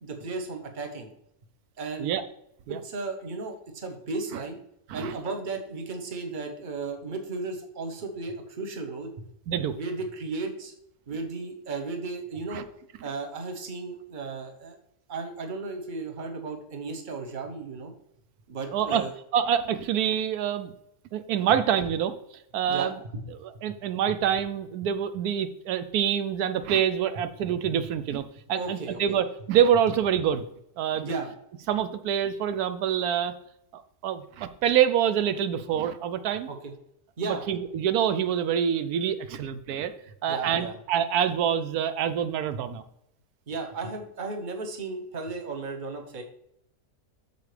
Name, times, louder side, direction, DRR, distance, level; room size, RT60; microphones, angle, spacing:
voice 1, 0.0-1.1 1.8-2.1 2.7-4.6 4.9-9.1 9.8-10.7 11.1-12.6 13.0-14.8 15.1-17.9 18.5-19.1 22.7-22.9 28.6-29.0 31.0-31.3 36.5-36.7 37.2-37.5 40.3-40.7 43.5-46.2, right 3 dB, 35° right, 4 dB, 1.1 m, -34 dB
voice 2, 9.5-9.8 12.5-12.6 18.7-19.0 19.3-20.7 21.1-22.1 22.5-22.9 23.4-30.4 30.8-31.1 31.7-33.3 33.7-36.5 37.2-39.9 40.2-42.8, right 9 dB, 85° right, 11 dB, 1.1 m, -26 dB
8.4 x 6.8 x 3.3 m, 0.77 s
omnidirectional pair, 1.6 m